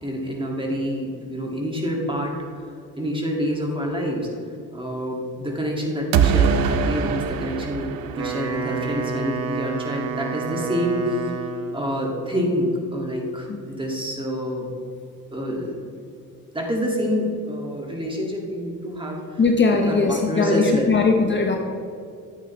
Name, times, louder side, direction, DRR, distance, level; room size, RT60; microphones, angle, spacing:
voice 1, 0.0-2.3 3.0-4.3 4.7-11.2 11.7-14.7 15.3-15.8 16.5-19.4 19.9-20.9, equal, 15° right, -1 dB, 2.0 m, -27 dB
sound 1, 6.1-9.0, right 7 dB, 80° right, 0.6 m, -22 dB
Wind instrument woodwind instrument, 8.0-11.9, right 5 dB, 45° right, 1.2 m, -30 dB
voice 2, 19.4-21.6, left 4 dB, 35° left, 2 dB, 0.9 m, -20 dB
10.5 x 8.5 x 3.1 m, 2.4 s
cardioid pair, 90°, 34 cm